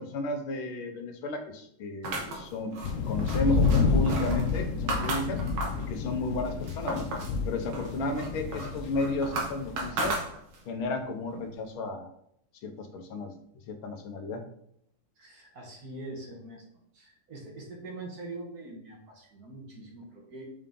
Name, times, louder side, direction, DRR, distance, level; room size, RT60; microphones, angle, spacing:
voice 1, 0.0-2.8 3.1-5.4 5.9-7.1 7.5-10.2 10.7-12.1 12.6-13.4 13.7-14.4, left 2 dB, 90° left, 6 dB, 1.7 m, -33 dB
sound 1, 2.0-5.9 6.3-7.4 7.7-10.8, right 2 dB, 80° right, 2.0 m, -35 dB
sound 2, 2.8-9.9, left 4 dB, 70° left, 0.7 m, -29 dB
voice 2, 15.2-16.6 16.9-20.4, right 2 dB, 50° right, 0 dB, 1.8 m, -43 dB
5.5 x 4.9 x 3.8 m, 0.70 s
omnidirectional pair, 2.2 m